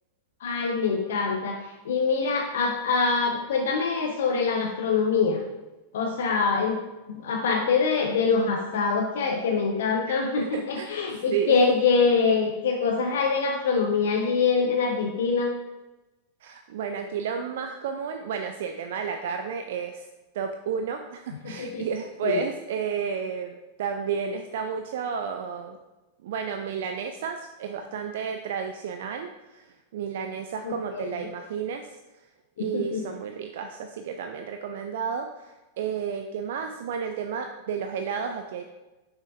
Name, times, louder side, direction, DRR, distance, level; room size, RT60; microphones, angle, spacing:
voice 1, 0.4-5.4 5.9-6.8 7.1-15.5 21.6-21.8 22.2-22.4 30.6-31.1 32.7-33.0, left 5 dB, 60° left, 2 dB, 0.6 m, -24 dB
voice 2, 10.4-11.6 16.4-20.1 20.3-25.8 26.2-32.0 32.6-38.6, right 6 dB, 55° right, 6 dB, 0.4 m, -32 dB
6.3 x 6.2 x 2.5 m, 1.1 s
figure-of-eight pair, 90°, 0 cm